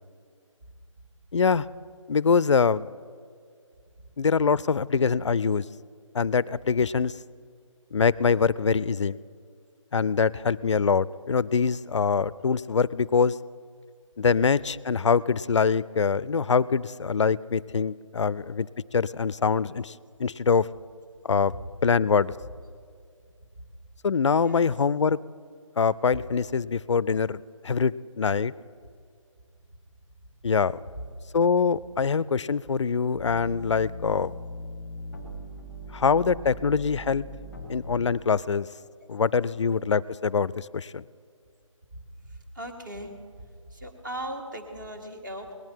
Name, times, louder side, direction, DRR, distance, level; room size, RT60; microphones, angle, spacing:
voice 1, 1.3-1.7 2.1-2.9 4.2-5.6 6.1-7.1 7.9-9.2 9.9-13.4 14.2-18.7 18.9-19.9 20.2-20.7 21.2-21.5 21.8-22.3 24.0-25.2 25.8-27.4 27.6-28.5 30.4-30.8 31.3-34.3 35.9-37.3 37.7-38.7 39.1-41.0, left 5 dB, 60° left, 21 dB, 0.4 m, -24 dB
voice 2, 17.9-18.3 24.4-24.7 30.9-31.0 42.3-43.1 43.4-45.5, right 1 dB, 35° right, 3 dB, 1.7 m, -39 dB
sound 1, 33.1-38.2, left 1 dB, ahead, 1.1 m, -40 dB
19.0 x 10.5 x 4.5 m, 2.2 s
figure-of-eight pair, 170°, 17 cm